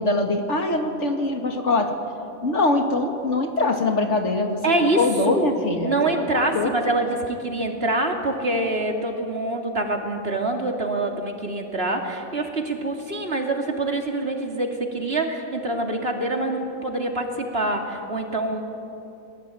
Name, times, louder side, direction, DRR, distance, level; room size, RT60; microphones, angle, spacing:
voice 1, 0.0-1.9 2.4-4.6 5.0-6.0 6.3-6.7, left 2 dB, 80° left, 4 dB, 2.6 m, -23 dB
voice 2, 4.6-5.5 5.8-18.6, right 2 dB, 60° right, 2 dB, 3.0 m, -25 dB
28.0 x 19.5 x 9.3 m, 2.9 s
omnidirectional pair, 1.2 m